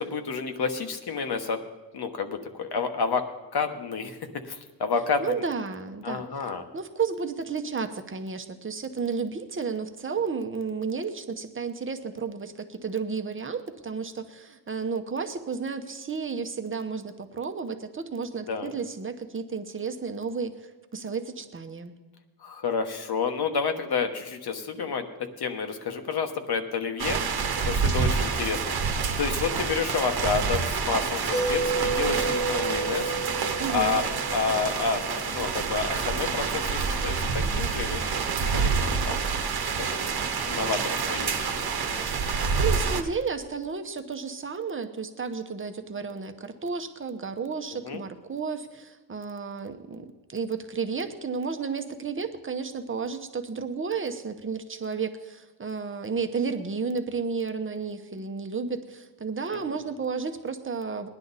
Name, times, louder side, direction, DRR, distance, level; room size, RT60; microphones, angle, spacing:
voice 1, 0.0-1.6 1.9-3.2 3.5-4.2 4.4-5.4 6.0-6.6 18.5-18.7 22.4-27.2 27.6-28.7 29.2-33.1 33.7-38.0 38.4-38.7 39.1-39.2 39.8-40.1 40.5-41.4 47.7-48.0 59.5-59.8, left 5 dB, 65° left, 6 dB, 1.2 m, -29 dB
voice 2, 5.2-21.9 33.6-34.0 42.2-61.1, right 5 dB, 30° right, 7 dB, 0.9 m, -32 dB
sound 1, 27.0-43.0, right 5 dB, 60° right, 1.1 m, -28 dB
Mallet percussion, 31.3-35.1, right 3 dB, 10° left, 1.2 m, -31 dB
20.0 x 10.5 x 4.1 m, 1.2 s
wide cardioid pair, 155°, 41 cm